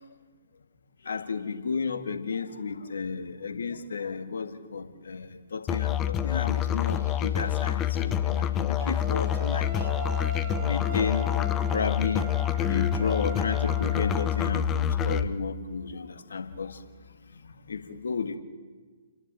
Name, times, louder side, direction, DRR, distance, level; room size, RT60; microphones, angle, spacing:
voice 1, 1.0-9.9 10.6-11.3 11.7-12.4 12.7-16.8 17.3-18.4, left 5 dB, 75° left, 8 dB, 1.9 m, -33 dB
Musical instrument, 5.7-15.3, left 10 dB, 20° left, 0.9 m, -27 dB
sound 1, 6.5-10.7, equal, 70° right, 6.9 m, -52 dB
sound 2, 8.8-14.5, right 1 dB, 25° right, 2.2 m, -40 dB
29.0 x 11.5 x 9.1 m, 1.5 s
hypercardioid pair, 130°, 0 cm